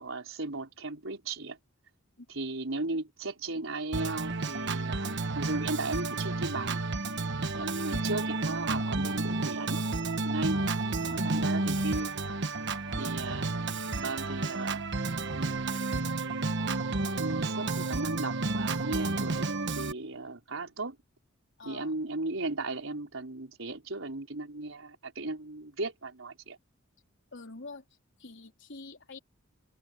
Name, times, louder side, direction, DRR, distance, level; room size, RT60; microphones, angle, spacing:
voice 1, 0.0-1.6 2.3-5.1 5.3-6.9 7.6-9.8 10.2-10.6 11.1-12.1 13.0-13.5 14.0-14.8 15.3-16.1 17.2-21.0 21.6-26.6, right 2 dB, 80° right, 4.5 m, -36 dB
Organ, 3.9-19.9, right 3 dB, 60° right, 1.2 m, -31 dB
voice 2, 10.5-12.0 12.9-13.2 21.6-21.9 27.3-27.8 28.2-29.2, left 3 dB, 65° left, 4.0 m, -46 dB
head